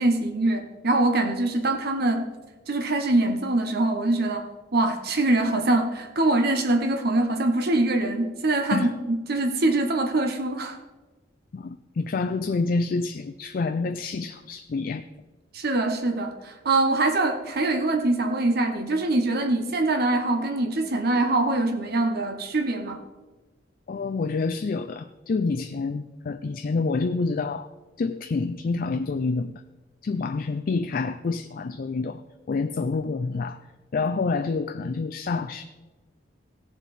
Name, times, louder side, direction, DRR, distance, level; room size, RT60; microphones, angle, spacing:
voice 1, 0.0-2.3 2.7-4.5 4.7-10.8 15.5-23.0, right 2 dB, 55° right, 6 dB, 0.9 m, -23 dB
voice 2, 11.5-15.1 23.9-27.7 28.0-29.5 30.0-32.2 32.5-33.6 33.9-35.6, left 4 dB, 50° left, 9 dB, 0.4 m, -27 dB
16.5 x 7.1 x 4.1 m, 1.2 s
head